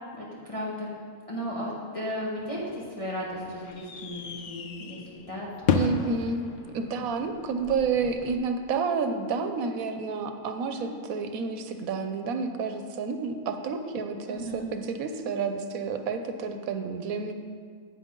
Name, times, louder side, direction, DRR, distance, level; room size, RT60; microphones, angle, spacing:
voice 1, 0.1-0.9 1.3-5.9 10.7-10.9 14.3-14.7, equal, 25° left, -6 dB, 1.4 m, -35 dB
sound 1, 2.4-8.4, left 5 dB, 85° left, 0.4 m, -33 dB
voice 2, 5.7-6.4 6.7-17.3, right 5 dB, 80° right, 7 dB, 1.1 m, -30 dB
9.2 x 8.9 x 3.7 m, 2.1 s
omnidirectional pair, 1.5 m